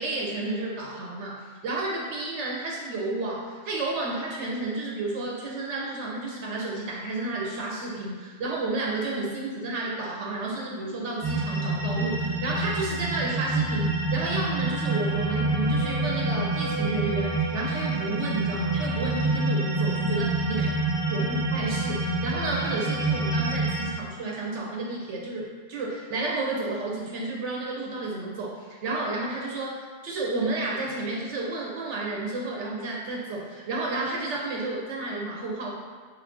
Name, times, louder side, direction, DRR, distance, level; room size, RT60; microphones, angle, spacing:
voice 1, 0.0-20.7 21.1-35.7, right 2 dB, 75° right, -3 dB, 0.9 m, -31 dB
sound 1, 11.2-23.8, right 2 dB, 35° right, 0.6 m, -27 dB
3.3 x 2.4 x 3.6 m, 1.5 s
omnidirectional pair, 1.2 m